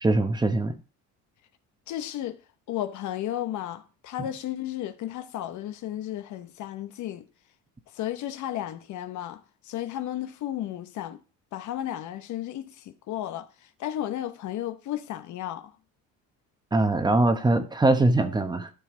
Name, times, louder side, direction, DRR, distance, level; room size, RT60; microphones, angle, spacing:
voice 1, 0.0-0.8 16.7-18.7, right 2 dB, 10° right, 1.0 m, -22 dB
voice 2, 1.9-2.4 2.7-7.3 7.9-11.2 11.5-13.5 13.8-15.7, left 12 dB, 60° left, 1.0 m, -33 dB
12.0 x 5.5 x 3.7 m
cardioid pair, 130°, 33 cm